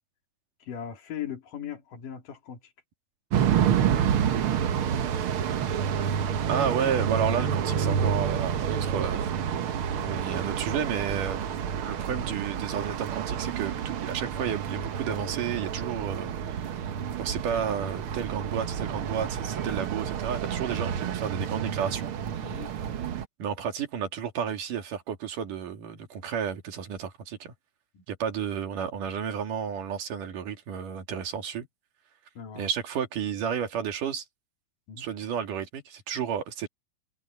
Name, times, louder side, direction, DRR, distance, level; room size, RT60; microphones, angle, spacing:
voice 1, 0.7-2.6 18.1-18.3 22.4-22.7 27.9-28.0 32.4-32.7 34.9-35.1, left 9 dB, 90° left, 4.3 m, -39 dB
sound 1, 3.3-23.3, right 8 dB, 60° right, 1.5 m, -29 dB
voice 2, 6.5-9.3 9.9-16.9 17.2-22.6 23.4-27.5 28.1-31.7 32.5-34.3 35.0-36.7, right 7 dB, 80° right, 3.9 m, -32 dB
omnidirectional pair, 3.6 m